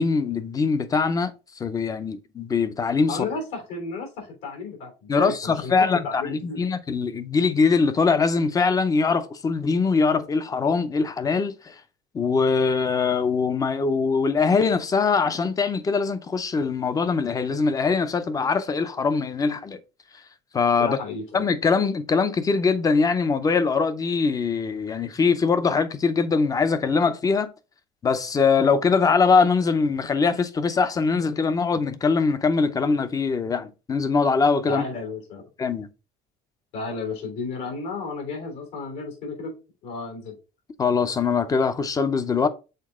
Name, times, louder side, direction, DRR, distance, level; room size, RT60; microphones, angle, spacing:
voice 1, 0.0-3.2 5.1-11.7 12.1-19.8 20.5-21.0 21.3-27.5 28.0-34.8 35.6-35.9 40.8-42.5, left 4 dB, 20° left, 0.5 m, -22 dB
voice 2, 3.1-6.7 20.8-21.4 34.7-35.4 36.7-39.5 39.8-40.4, left 4 dB, 80° left, 3.4 m, -33 dB
6.6 x 4.2 x 3.6 m
cardioid pair, 160°, 18 cm